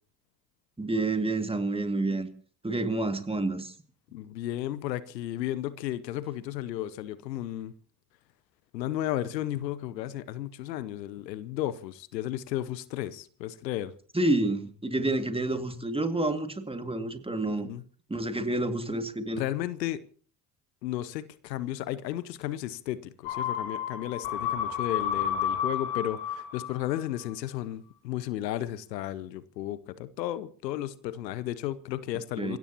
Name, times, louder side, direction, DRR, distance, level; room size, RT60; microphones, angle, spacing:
voice 1, 0.8-2.3 2.6-3.7 14.1-17.7 18.1-19.4 32.4-32.6, right 2 dB, 10° right, 2.2 m, -29 dB
voice 2, 4.1-7.7 8.7-13.9 17.5-17.8 19.3-20.0 20.8-32.6, left 13 dB, 80° left, 0.9 m, -34 dB
sound 1, 23.3-27.0 27.3-27.4, left 9 dB, 65° left, 3.5 m, -31 dB
29.0 x 16.5 x 2.9 m
figure-of-eight pair, 50°, 50 cm